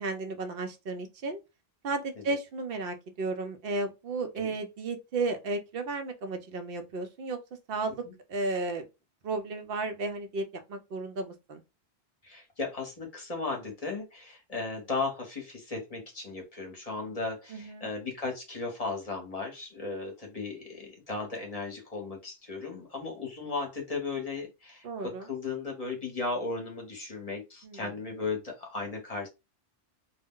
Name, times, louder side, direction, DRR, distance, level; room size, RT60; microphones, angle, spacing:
voice 1, 0.0-1.4 1.8-7.4 7.7-8.0 8.3-8.8 9.2-11.6 17.5-17.9 24.8-25.3 27.6-27.8, right 3 dB, 70° right, 0.7 m, -33 dB
voice 2, 12.2-29.3, left 3 dB, 40° left, 0.8 m, -36 dB
2.2 x 2.0 x 3.5 m
omnidirectional pair, 1.1 m